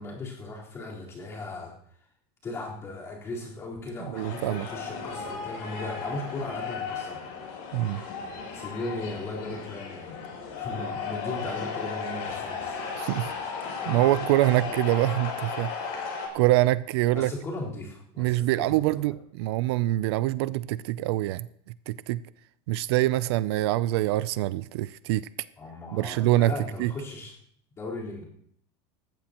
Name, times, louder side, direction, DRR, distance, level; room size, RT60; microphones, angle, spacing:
voice 1, 0.0-1.7 2.4-7.2 8.5-10.2 10.5-12.8 17.1-19.2 25.6-27.3 27.8-28.2, left 2 dB, 20° left, -4 dB, 4.1 m, -37 dB
sound 1, 4.1-16.3, left 5 dB, 60° left, 6.7 m, -35 dB
voice 2, 4.1-4.7 7.7-8.0 13.0-13.3 13.9-15.7 16.3-17.3 18.2-21.5 21.9-22.2 22.7-25.3 25.9-26.5 26.8-26.9, right 16 dB, 70° right, 17 dB, 0.5 m, -25 dB
19.0 x 15.0 x 3.0 m, 0.67 s
cardioid pair, 170°, 14 cm